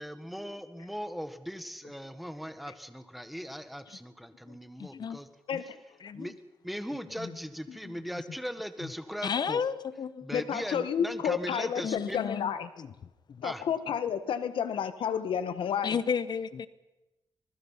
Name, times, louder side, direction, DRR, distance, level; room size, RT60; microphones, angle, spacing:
voice 1, 0.0-5.3 5.6-5.7 6.1-6.3 6.6-9.6 10.2-12.2 13.4-13.6, equal, ahead, 10 dB, 1.5 m, -39 dB
voice 2, 4.5-5.2 5.5-5.6 6.0-6.3 7.2-7.4 7.7-7.9 9.2-10.3 11.8-12.9 13.3-13.4 15.8-16.7, left 6 dB, 55° left, 16 dB, 0.9 m, -33 dB
voice 3, 10.3-12.7 13.4-16.0, left 8 dB, 85° left, 12 dB, 1.4 m, -31 dB
26.0 x 20.0 x 5.7 m, 1.0 s
cardioid pair, 115°, 9 cm